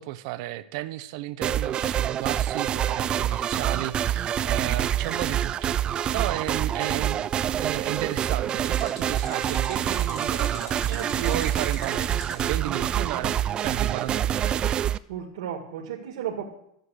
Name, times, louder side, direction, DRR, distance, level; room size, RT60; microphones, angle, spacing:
voice 1, 0.0-7.3 7.6-14.6, right 16 dB, 60° right, 13 dB, 0.8 m, -33 dB
sound 1, 1.4-15.0, right 10 dB, 25° right, 0.4 m, -26 dB
sound 2, 8.7-12.5, left 5 dB, 80° left, 3.3 m, -44 dB
voice 2, 10.8-11.4 15.1-16.4, right 9 dB, 85° right, 1 dB, 2.0 m, -34 dB
12.5 x 8.0 x 6.4 m, 0.76 s
supercardioid pair, 145°, 3 cm